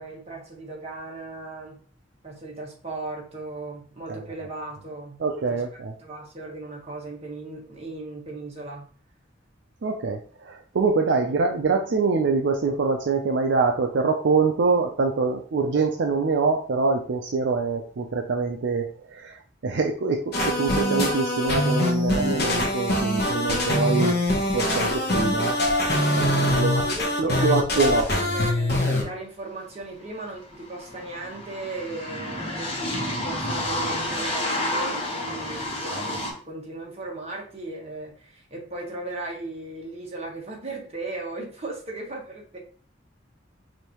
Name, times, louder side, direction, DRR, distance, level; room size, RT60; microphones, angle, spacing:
voice 1, 0.0-1.8 2.2-5.2 5.4-8.9 11.1-11.2 26.5-27.8 28.1-42.6, right 2 dB, 35° right, -1 dB, 1.3 m, -37 dB
voice 2, 5.2-5.9 9.8-19.4 19.6-24.2 24.5-25.6 26.1-26.8 27.2-28.1, right 4 dB, 65° right, 3 dB, 0.5 m, -24 dB
sound 1, 20.3-29.0, left 1 dB, 55° left, 1.0 m, -23 dB
sound 2, 29.8-29.9 30.1-36.3, left 1 dB, 30° left, 1.1 m, -30 dB
5.1 x 2.7 x 2.9 m, 0.42 s
head